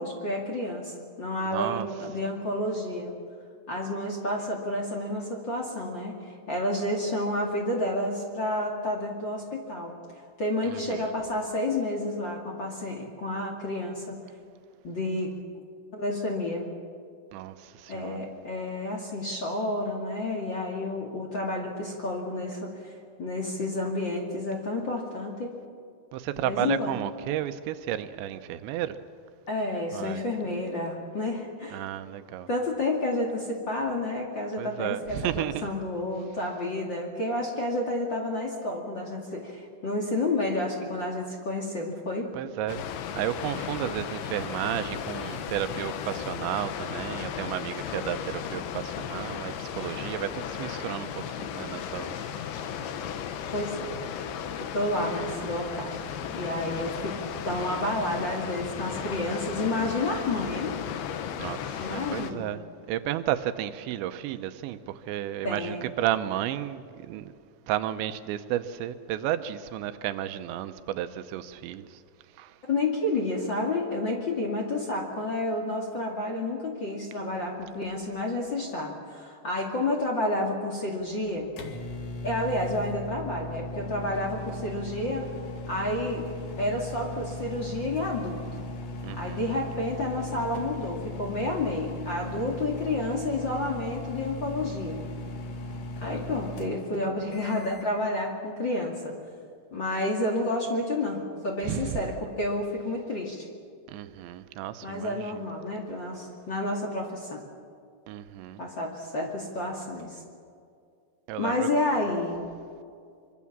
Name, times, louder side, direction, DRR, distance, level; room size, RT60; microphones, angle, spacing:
voice 1, 0.0-3.1 3.7-9.9 10.4-14.2 14.8-15.3 15.9-16.7 17.9-22.9 23.2-25.5 26.4-27.0 29.5-31.8 32.5-42.3 53.5-54.0 54.7-56.0 56.3-60.8 61.8-62.5 65.4-65.8 72.7-81.5 82.2-85.3 85.7-86.3 86.6-88.4 89.2-95.0 96.0-99.1 99.7-103.5 104.8-107.4 108.6-110.2 111.4-112.4, left 1 dB, 35° left, 2.2 m, -30 dB
voice 2, 1.4-1.9 10.6-11.1 17.3-18.2 26.1-29.0 29.9-30.2 31.7-32.5 34.6-35.7 42.3-42.8 43.1-52.8 61.4-62.6 62.9-67.3 67.7-72.0 72.4-72.6 89.0-89.4 101.6-102.0 103.9-105.4 108.1-108.6 111.3-111.7, right 12 dB, 85° right, 3.2 m, -33 dB
Water, 42.7-62.3, left 8 dB, 70° left, 3.0 m, -35 dB
sound 1, 81.0-97.9, left 1 dB, 55° left, 3.5 m, -38 dB
25.0 x 24.0 x 7.4 m
omnidirectional pair, 5.1 m